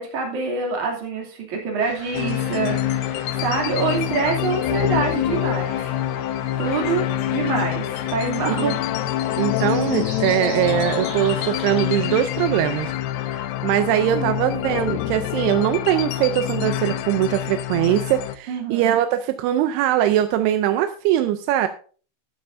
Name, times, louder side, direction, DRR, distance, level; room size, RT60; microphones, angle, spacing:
voice 1, 0.0-5.7 6.6-8.8 14.1-14.3 18.5-19.0, right 4 dB, 50° right, 0 dB, 3.9 m, -26 dB
sound 1, 1.8-12.9, left 1 dB, 25° left, 4.3 m, -40 dB
sound 2, 2.1-18.4, left 12 dB, 90° left, 2.9 m, -26 dB
voice 2, 9.4-12.9 13.2-21.7, right 12 dB, 85° right, 9 dB, 2.7 m, -21 dB
12.5 x 12.0 x 2.7 m, 0.40 s
omnidirectional pair, 4.6 m